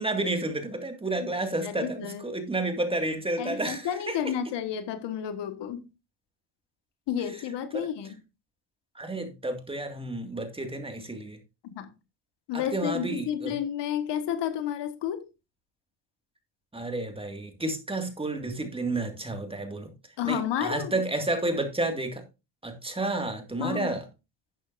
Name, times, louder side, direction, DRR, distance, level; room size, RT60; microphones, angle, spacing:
voice 1, 0.0-4.3 7.7-7.9 9.0-11.4 12.5-13.5 16.7-19.9 20.2-22.2 22.6-24.0, right 2 dB, 15° right, 2.1 m, -31 dB
voice 2, 1.6-2.2 3.4-5.8 7.1-8.1 11.6-11.9 12.5-15.3 20.2-20.9 23.6-23.9, left 9 dB, 75° left, 1.6 m, -31 dB
11.5 x 9.1 x 2.6 m
cardioid pair, 115°, 42 cm